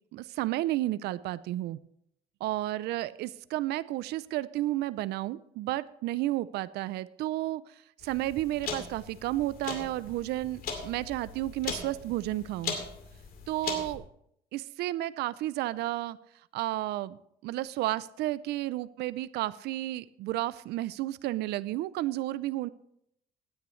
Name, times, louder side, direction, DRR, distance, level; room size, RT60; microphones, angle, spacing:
voice 1, 0.1-1.8 2.4-7.6 8.0-12.8 13.5-14.0 14.5-16.2 16.5-22.7, right 16 dB, 75° right, 17 dB, 0.4 m, -32 dB
sound 1, 8.0-14.0, left 5 dB, 60° left, 2.4 m, -39 dB
17.0 x 9.7 x 3.1 m, 0.74 s
cardioid pair, 110°, 17 cm